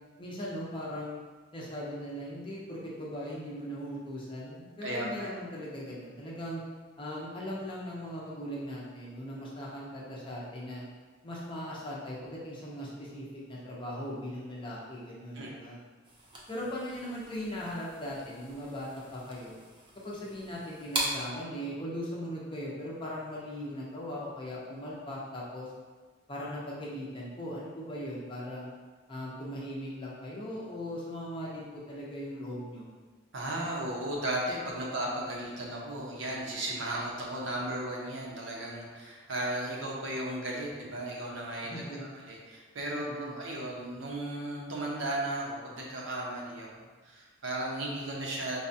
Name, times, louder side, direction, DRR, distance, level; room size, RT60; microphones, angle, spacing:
voice 1, 0.2-1.2 1.5-6.6 7.0-10.8 11.2-15.8 16.5-19.6 20.0-25.7 26.3-28.7 29.1-32.9 41.7-42.1 43.0-43.3, equal, 25° left, -5 dB, 0.6 m, -39 dB
voice 2, 4.8-5.3 15.3-15.5 33.3-48.6, right 1 dB, 65° right, -3 dB, 0.7 m, -35 dB
sound 1, 16.0-21.4, right 1 dB, 25° right, 0.5 m, -40 dB
4.7 x 2.2 x 2.7 m, 1.4 s
head